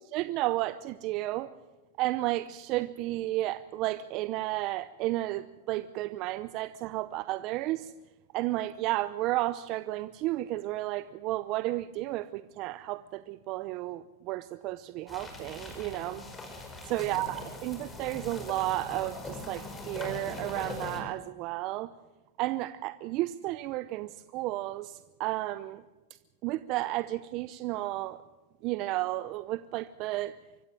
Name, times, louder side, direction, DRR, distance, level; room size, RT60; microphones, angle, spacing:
voice 1, 0.1-1.5 2.0-7.9 8.3-16.2 16.8-21.9 22.4-25.8 26.4-28.2 28.6-30.4, right 17 dB, 45° right, 14 dB, 0.7 m, -32 dB
sound 1, 15.1-21.0, left 2 dB, 15° left, 5.0 m, -41 dB
24.5 x 15.0 x 7.6 m, 1.1 s
hypercardioid pair, 125°, 0 cm